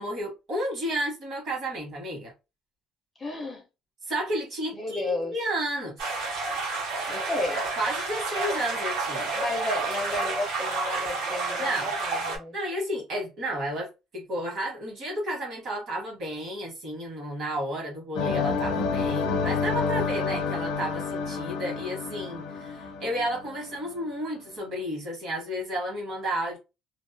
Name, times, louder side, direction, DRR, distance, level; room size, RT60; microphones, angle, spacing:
voice 1, 0.0-2.3 4.0-6.1 7.0-7.2 7.5-9.3 11.6-11.9 12.5-26.6, right 1 dB, 40° right, 1.0 m, -32 dB
voice 2, 3.2-3.6 4.7-5.3 7.3-7.7 9.3-12.6, left 2 dB, 15° left, 0.4 m, -32 dB
sound 1, 6.0-12.4, right 3 dB, 70° right, 1.0 m, -30 dB
sound 2, 18.2-24.1, left 5 dB, 70° left, 0.5 m, -29 dB
2.2 x 2.2 x 2.5 m
cardioid pair, 180°, 0 cm